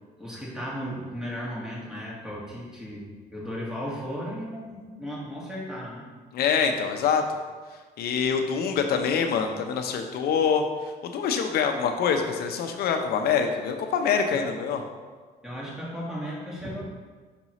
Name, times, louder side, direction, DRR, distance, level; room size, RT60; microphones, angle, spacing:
voice 1, 0.2-6.1 14.3-14.5 15.4-16.8, equal, 5° right, -5 dB, 1.8 m, -35 dB
voice 2, 6.3-7.4 8.0-10.6 11.0-14.8, left 6 dB, 70° left, 5 dB, 0.7 m, -25 dB
6.0 x 5.5 x 3.0 m, 1.4 s
cardioid pair, 110°, 17 cm